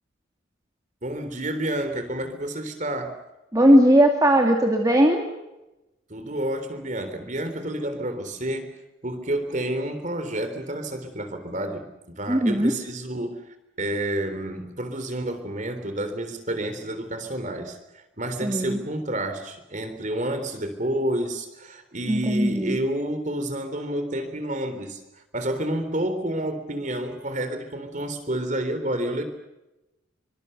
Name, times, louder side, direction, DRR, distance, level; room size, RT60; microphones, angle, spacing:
voice 1, 1.0-3.2 6.1-8.7 9.0-13.4 13.8-29.2, right 1 dB, 40° right, 9 dB, 3.6 m, -29 dB
voice 2, 3.5-5.2 12.3-12.7 18.4-18.8 22.1-22.8, equal, 15° right, 1 dB, 2.4 m, -18 dB
25.5 x 25.0 x 6.8 m, 0.98 s
head